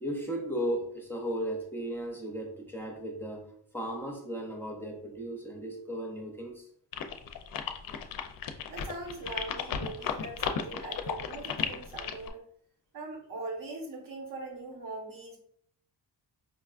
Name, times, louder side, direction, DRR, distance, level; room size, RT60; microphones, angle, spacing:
voice 1, 0.0-6.7, right 1 dB, 5° left, 0 dB, 0.5 m, -36 dB
sound 1, 6.9-12.3, left 8 dB, 55° left, 0.5 m, -34 dB
voice 2, 8.7-12.4 12.9-15.4, right 2 dB, 50° right, 1 dB, 1.0 m, -41 dB
5.0 x 2.3 x 2.4 m, 0.64 s
wide cardioid pair, 135°, 41 cm